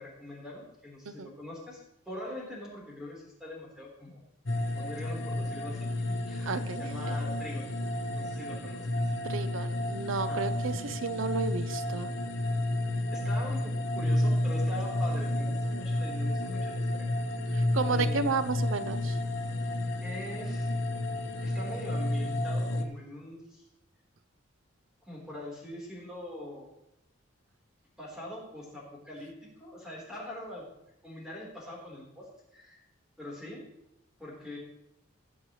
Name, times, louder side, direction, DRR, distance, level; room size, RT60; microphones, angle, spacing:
voice 1, 0.0-1.8 2.1-4.2 4.7-7.7 8.1-8.8 10.2-10.5 13.1-17.0 17.3-17.5 17.9-18.3 20.0-20.7 21.4-23.6 25.0-26.7 28.0-30.7 31.0-32.8 33.2-33.7 34.2-34.6, left 1 dB, 5° right, -4 dB, 3.9 m, -43 dB
sound 1, 4.5-22.8, left 1 dB, 55° left, 1.1 m, -31 dB
voice 2, 6.5-7.1 9.3-12.1 17.5-19.2, right 4 dB, 65° right, 12 dB, 0.6 m, -33 dB
20.0 x 7.2 x 3.2 m, 0.83 s
head